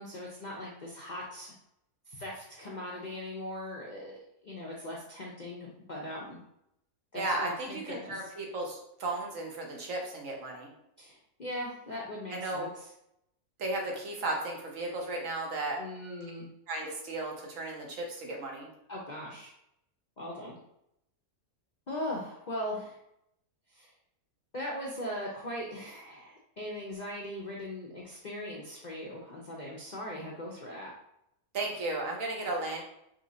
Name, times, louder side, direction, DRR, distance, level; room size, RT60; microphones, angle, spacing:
voice 1, 0.0-1.5 2.1-6.4 7.1-8.3 11.0-12.9 15.8-16.5 18.9-19.5 20.2-20.5 21.9-23.0 23.7-23.9 24.5-30.9, left 1 dB, 50° left, -4 dB, 0.5 m, -39 dB
voice 2, 7.1-10.7 12.3-12.7 13.6-15.8 16.7-18.7 31.5-32.8, right 2 dB, 65° right, 0 dB, 1.2 m, -35 dB
5.2 x 3.0 x 2.7 m, 0.79 s
omnidirectional pair, 1.6 m